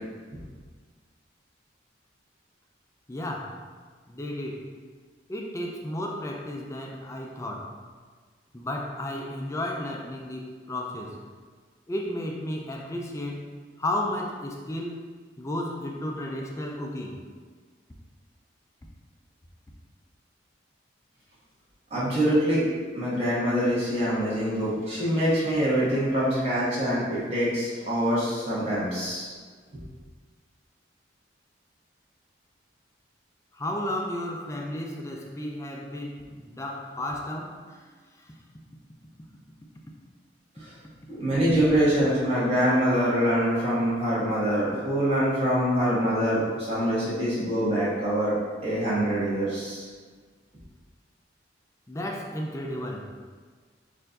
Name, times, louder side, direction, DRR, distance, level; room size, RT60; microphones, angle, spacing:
voice 1, 3.1-3.6 4.1-4.7 5.3-7.7 8.5-11.3 11.9-15.0 15.4-17.2 33.5-37.8 51.9-53.1, left 1 dB, 15° left, 0 dB, 0.3 m, -33 dB
voice 2, 21.9-22.6 22.9-29.3 40.6-40.7 41.1-48.3 48.6-49.8, equal, 30° right, -9 dB, 1.4 m, -24 dB
4.3 x 2.6 x 3.9 m, 1.5 s
head